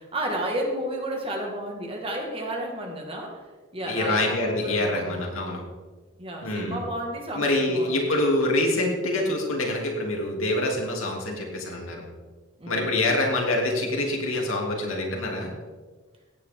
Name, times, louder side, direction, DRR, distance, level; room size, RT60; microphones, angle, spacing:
voice 1, 0.0-3.4 3.7-5.2 6.2-8.1 12.6-12.8, right 1 dB, 25° right, 1 dB, 1.8 m, -32 dB
voice 2, 3.8-5.6 6.4-6.8 7.3-12.0 12.7-15.5, left 2 dB, 85° left, -1 dB, 2.9 m, -25 dB
16.0 x 9.1 x 3.7 m, 1.3 s
head